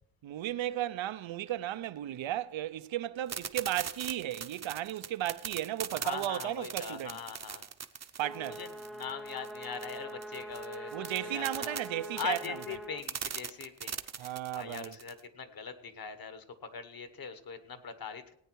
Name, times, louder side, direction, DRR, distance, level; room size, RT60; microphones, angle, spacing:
voice 1, 0.2-7.2 8.2-8.6 10.9-12.4 14.2-14.9, right 13 dB, 85° right, 0.7 m, -35 dB
sound 1, 3.3-15.2, right 7 dB, 35° right, 0.7 m, -40 dB
voice 2, 6.0-7.6 8.4-11.8 12.2-18.4, left 6 dB, 50° left, 1.3 m, -41 dB
sound 2, 8.2-13.1, right 1 dB, ahead, 0.4 m, -44 dB
17.5 x 9.2 x 4.6 m
wide cardioid pair, 125°, 45 cm